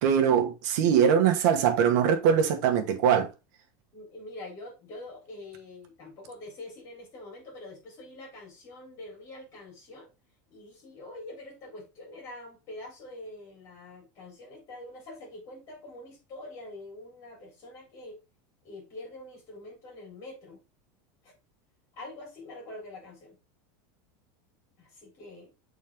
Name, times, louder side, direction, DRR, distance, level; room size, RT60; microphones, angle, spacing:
voice 1, 0.0-3.3, right 8 dB, 60° right, 1.3 m, -22 dB
voice 2, 3.9-10.1 10.5-18.2 18.6-20.6 21.2-21.3 22.0-23.4 24.8-25.5, left 2 dB, 30° left, 3.9 m, -45 dB
7.4 x 4.2 x 3.5 m
supercardioid pair, 180°, 11 cm